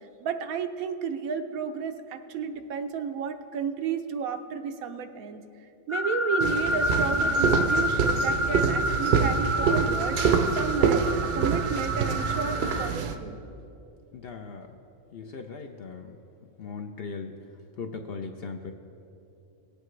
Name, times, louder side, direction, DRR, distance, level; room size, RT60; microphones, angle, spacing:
voice 1, 0.2-5.4 5.9-11.0 11.3-13.4, right 6 dB, 85° right, 7 dB, 1.1 m, -32 dB
sound 1, 5.9-12.9, equal, 20° right, 0.4 m, -28 dB
sound 2, 6.4-13.1, right 6 dB, 60° right, 0.8 m, -26 dB
voice 2, 14.1-14.7 15.1-16.2 16.6-17.3 17.8-18.7, left 5 dB, 60° left, 5 dB, 0.6 m, -38 dB
18.0 x 8.3 x 3.2 m, 2.8 s
omnidirectional pair, 1.4 m